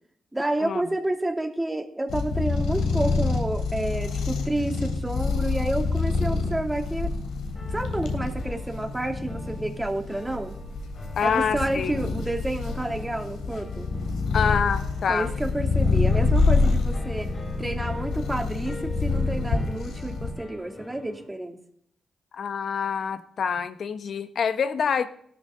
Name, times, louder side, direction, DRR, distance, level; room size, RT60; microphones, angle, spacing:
voice 1, 0.3-7.1 7.7-10.6 11.2-13.9 15.1-17.3 17.6-21.6, right 1 dB, 15° right, 4 dB, 2.9 m, -29 dB
sound 1, 2.1-20.3, left 4 dB, 85° left, 3.1 m, -27 dB
sound 2, 7.5-21.3, left 2 dB, 40° left, 3.0 m, -44 dB
voice 2, 11.2-12.0 14.3-15.3 22.3-25.1, left 6 dB, 70° left, 11 dB, 1.1 m, -26 dB
17.0 x 13.0 x 3.9 m, 0.68 s
supercardioid pair, 50°, 0 cm